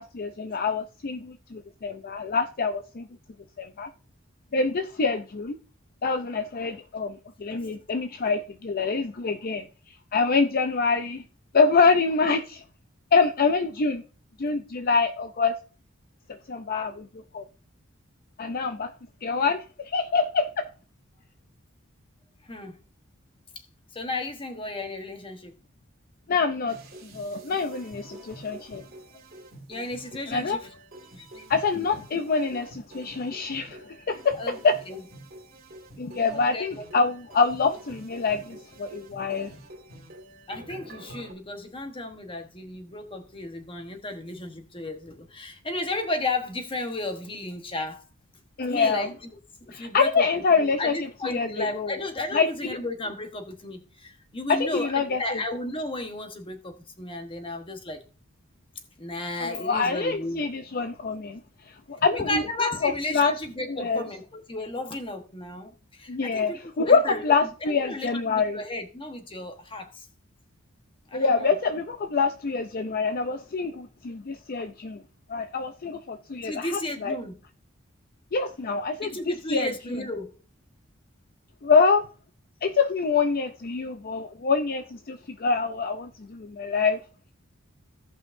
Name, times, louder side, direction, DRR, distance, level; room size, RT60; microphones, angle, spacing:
voice 1, 0.0-3.1 3.6-3.9 4.5-5.6 6.0-9.6 10.1-11.2 11.5-12.6 13.1-14.0 14.4-15.5 16.5-17.1 17.3-17.4 18.4-18.9 19.2-20.6 26.3-26.8 27.0-28.8 30.3-30.6 31.5-34.7 36.0-39.5 48.6-49.1 49.7-51.0 51.2-52.0 52.3-52.8 54.5-55.4 59.4-61.4 61.7-62.4 62.8-63.3 63.7-64.0 66.1-66.5 66.8-68.6 71.1-75.0 75.3-77.2 78.3-79.2 79.5-79.7 81.6-82.0 82.6-87.0, left 4 dB, 45° left, 0.5 m, -25 dB
voice 2, 22.4-22.8 23.9-25.5 29.7-30.6 31.2-31.4 34.3-34.5 34.9-35.0 36.3-36.9 40.5-48.0 48.6-49.1 49.6-50.3 50.6-58.0 59.0-60.4 62.1-67.2 67.6-70.1 71.1-71.5 76.4-77.4 79.0-80.3, left 2 dB, 25° left, 1.2 m, -33 dB
sound 1, 26.7-41.3, right 1 dB, 45° right, 2.3 m, -47 dB
17.0 x 5.6 x 2.6 m
head